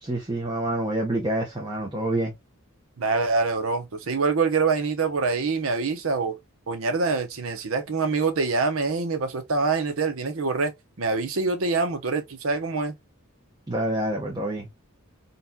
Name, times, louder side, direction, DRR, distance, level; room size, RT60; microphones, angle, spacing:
voice 1, 0.0-2.3 13.7-14.7, right 1 dB, 20° right, 0.7 m, -27 dB
voice 2, 3.0-6.4 6.7-10.7 11.0-13.0, right 4 dB, 75° right, 0.8 m, -25 dB
3.9 x 2.3 x 2.7 m
head